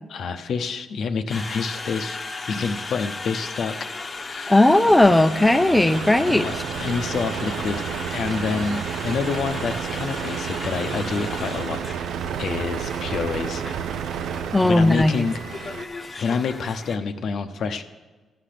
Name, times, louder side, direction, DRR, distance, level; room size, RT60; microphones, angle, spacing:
voice 1, 0.1-2.2 2.5-3.8 4.3-4.6 6.2-7.8 8.1-13.6 14.6-15.4 16.2-17.8, left 5 dB, 70° left, 8 dB, 0.8 m, -28 dB
Conversation, 1.3-17.0, left 3 dB, 35° left, 0.9 m, -36 dB
voice 2, 4.5-6.4 14.5-15.3, left 1 dB, 10° left, 8 dB, 0.6 m, -17 dB
Truck, 4.6-15.8, right 8 dB, 80° right, 0.4 m, -31 dB
14.5 x 5.9 x 6.7 m, 1.3 s
cardioid pair, 75°, 0 cm